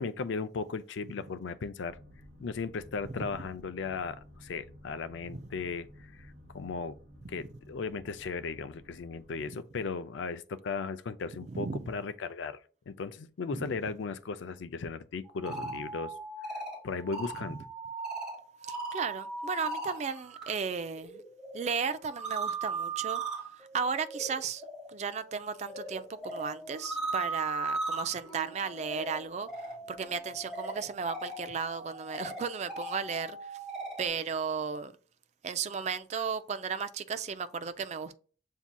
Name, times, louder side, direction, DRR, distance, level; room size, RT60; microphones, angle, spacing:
voice 1, 0.0-2.0 2.4-6.3 6.5-7.0 7.3-12.6 12.9-16.1 16.8-17.6, left 4 dB, 85° left, 0.4 m, -36 dB
sound 1, 1.9-9.3, left 1 dB, 60° right, 0.9 m, -54 dB
voice 2, 11.5-11.9 13.5-13.7 15.5-15.6 18.7-21.2 21.5-23.2 23.6-33.6 34.0-34.9 35.4-38.2, right 6 dB, 35° right, 0.3 m, -35 dB
sound 2, 15.2-20.5 20.8-34.1, right 3 dB, 5° right, 1.8 m, -39 dB
Dog, 25.8-27.3 28.2-30.5, right 4 dB, 30° left, 0.7 m, -54 dB
7.1 x 2.7 x 2.2 m
head